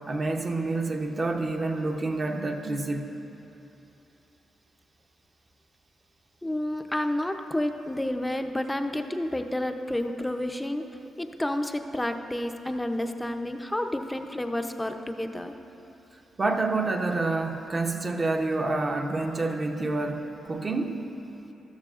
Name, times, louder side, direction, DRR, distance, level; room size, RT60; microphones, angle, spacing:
voice 1, 0.1-3.1 16.4-21.0, right 3 dB, 30° right, 2 dB, 0.7 m, -28 dB
voice 2, 6.4-10.9 11.2-15.5, left 1 dB, 10° left, 6 dB, 0.6 m, -30 dB
13.5 x 12.5 x 2.5 m, 3.0 s
cardioid pair, 100°, 0 cm